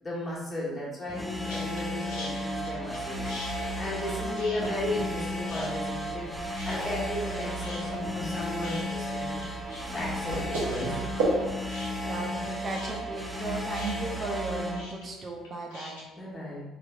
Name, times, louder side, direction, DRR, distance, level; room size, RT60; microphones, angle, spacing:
voice 1, 0.0-3.2 3.8-6.3 6.6-9.7 9.9-11.0 16.2-16.6, left 1 dB, 25° left, -6 dB, 1.4 m, -35 dB
sound 1, 1.1-14.8, equal, ahead, 0.5 m, -34 dB
sound 2, 1.5-1.8 2.1-3.0 3.3-5.2 5.5-6.3 6.6-7.3 7.6-16.0, left 2 dB, 80° left, 0.7 m, -43 dB
sound 3, 3.1-11.5, right 1 dB, 85° right, 0.9 m, -37 dB
voice 2, 4.5-4.9 12.0-16.0, right 2 dB, 45° right, 0 dB, 0.6 m, -36 dB
3.3 x 3.0 x 2.4 m, 1.0 s
hypercardioid pair, 60°, 0 cm